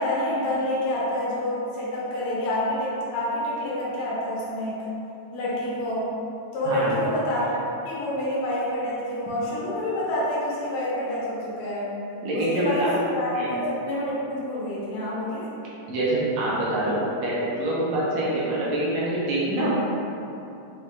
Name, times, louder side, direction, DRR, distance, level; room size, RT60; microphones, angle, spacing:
voice 1, 0.0-4.8 5.3-6.1 6.5-7.5 7.8-11.9 12.3-15.4, left 1 dB, 75° left, -7 dB, 2.1 m, -27 dB
voice 2, 6.7-7.0 12.2-12.9 13.3-13.5 15.9-19.7, right 1 dB, 75° right, -7 dB, 1.9 m, -25 dB
5.5 x 2.4 x 3.2 m, 2.9 s
omnidirectional pair, 3.3 m